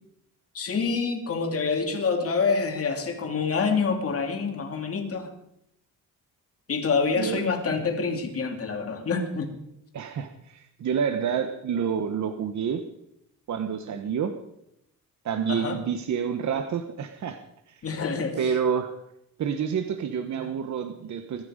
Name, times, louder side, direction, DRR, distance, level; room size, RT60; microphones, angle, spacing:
voice 1, 0.5-5.3 6.7-9.5 15.5-15.8 17.8-18.5, left 5 dB, 40° left, 3 dB, 2.7 m, -27 dB
voice 2, 7.2-7.5 9.9-12.8 13.5-14.3 15.2-17.4 17.7-17.8 18.4-18.9 19.4-21.4, right 7 dB, 55° right, 7 dB, 1.1 m, -28 dB
22.5 x 12.5 x 5.1 m, 0.80 s
cardioid pair, 155°, 35 cm